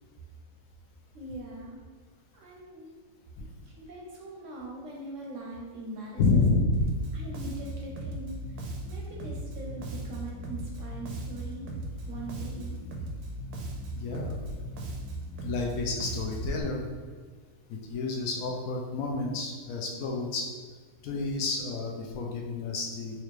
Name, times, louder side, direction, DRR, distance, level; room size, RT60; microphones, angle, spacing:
voice 1, 1.1-1.8 2.3-2.9 3.4-6.4 7.1-11.7 12.1-12.8, right 2 dB, 65° right, -2 dB, 0.9 m, -42 dB
voice 2, 6.2-6.9 12.6-12.7 13.9-14.5 15.4-16.8 17.7-20.5 21.0-23.2, left 3 dB, 70° left, 0 dB, 0.9 m, -29 dB
Bass guitar, 6.7-16.6, right 1 dB, 85° right, 1.1 m, -37 dB
4.2 x 2.4 x 3.1 m, 1.5 s
omnidirectional pair, 1.6 m